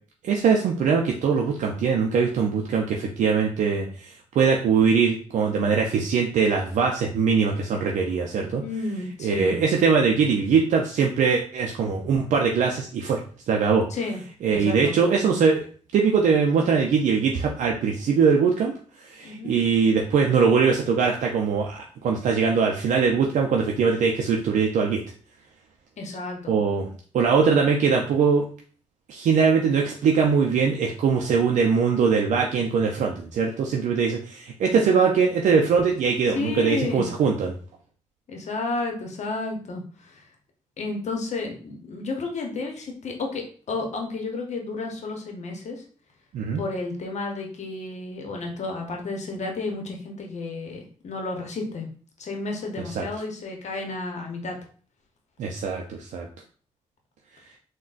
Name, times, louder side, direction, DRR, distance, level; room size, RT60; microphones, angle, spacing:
voice 1, 0.2-8.6 9.2-13.2 13.5-13.9 14.4-15.7 15.9-25.0 26.5-26.9 27.1-28.4 29.1-37.5 46.3-46.6 53.0-53.1 55.4-56.3, right 5 dB, 75° right, 1 dB, 0.4 m, -22 dB
voice 2, 8.6-9.5 13.9-14.2 14.5-14.9 19.2-19.5 26.0-26.5 36.3-37.1 38.3-40.3 40.8-45.8 46.5-51.9 52.2-54.6, left 3 dB, 65° left, 2 dB, 0.8 m, -32 dB
3.7 x 2.2 x 2.4 m, 0.43 s
supercardioid pair, 55°, 13 cm